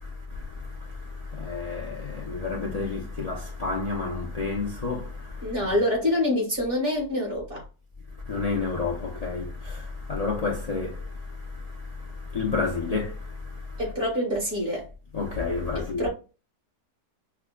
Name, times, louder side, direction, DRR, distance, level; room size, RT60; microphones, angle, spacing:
voice 1, 0.0-5.7 8.3-13.8 15.1-16.1, left 4 dB, 80° left, 0.3 m, -31 dB
voice 2, 5.4-7.6 13.8-14.9 15.8-16.1, left 1 dB, 35° right, 2.0 m, -26 dB
5.9 x 2.2 x 2.3 m
omnidirectional pair, 1.7 m